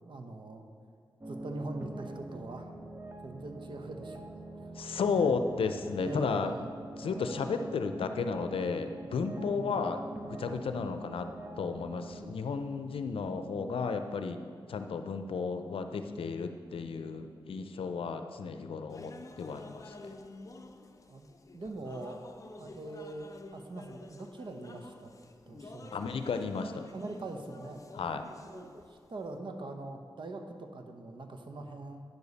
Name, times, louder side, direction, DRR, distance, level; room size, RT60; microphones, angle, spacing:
voice 1, 0.0-0.7 1.3-2.7 3.2-4.7 5.0-5.4 6.0-6.7 9.4-9.9 13.3-13.8 21.1-21.3 21.5-22.2 22.6-25.1 25.5-26.0 26.9-27.8 28.4-32.0, right 2 dB, 60° right, 5 dB, 0.9 m, -43 dB
sound 1, 1.2-12.3, right 2 dB, 25° right, 0.7 m, -44 dB
voice 2, 4.7-6.5 7.0-10.0 10.3-11.3 11.6-14.4 14.7-20.2 25.9-26.9 27.9-28.2, left 5 dB, 85° left, 8 dB, 0.5 m, -33 dB
sound 2, 18.9-29.4, left 2 dB, 35° left, 0.6 m, -50 dB
9.4 x 6.9 x 4.1 m, 2.3 s
cardioid pair, 55°, 9 cm